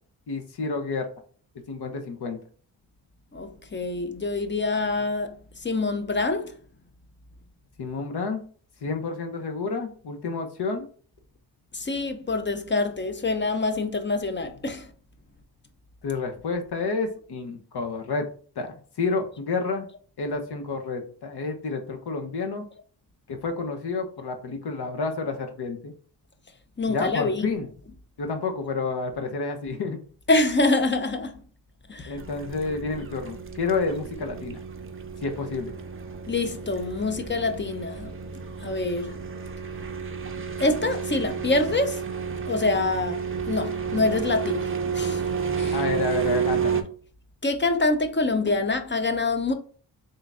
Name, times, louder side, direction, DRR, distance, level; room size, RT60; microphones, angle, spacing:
voice 1, 0.3-1.1 1.7-2.4 7.8-8.4 8.8-10.9 16.0-18.3 18.6-19.9 20.2-22.6 23.3-25.9 26.9-27.7 28.2-30.0 32.1-34.6 35.2-35.7 45.7-46.8, left 4 dB, 55° left, 0.9 m, -29 dB
voice 2, 3.3-5.3 5.6-6.5 11.7-14.9 26.8-27.5 30.3-31.4 31.9-32.1 36.3-38.1 38.6-39.1 40.6-42.0 42.5-43.2 43.5-44.7 44.9-45.2 45.6-45.8 47.4-49.5, left 2 dB, 25° left, 0.6 m, -25 dB
sound 1, 32.2-46.8, right 6 dB, 30° right, 0.6 m, -31 dB
3.7 x 2.7 x 3.4 m
cardioid pair, 55°, 46 cm